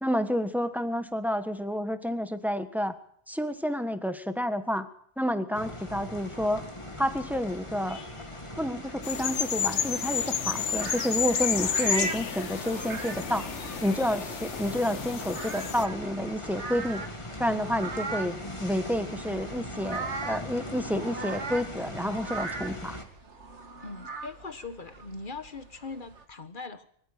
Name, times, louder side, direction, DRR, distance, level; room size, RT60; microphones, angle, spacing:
voice 1, 0.0-2.9 3.3-4.9 5.2-6.6 7.0-8.0 8.6-13.5 13.8-17.0 17.4-18.3 18.6-23.0, equal, ahead, 9 dB, 1.4 m, -29 dB
sound 1, 5.5-23.0, left 1 dB, 25° left, 2.5 m, -40 dB
sound 2, 9.0-15.9, left 7 dB, 80° left, 1.4 m, -31 dB
sound 3, 10.8-26.2, right 4 dB, 80° right, 2.0 m, -40 dB
voice 2, 23.8-26.9, left 3 dB, 45° left, 10 dB, 1.6 m, -40 dB
24.0 x 14.0 x 9.0 m, 0.65 s
omnidirectional pair, 1.2 m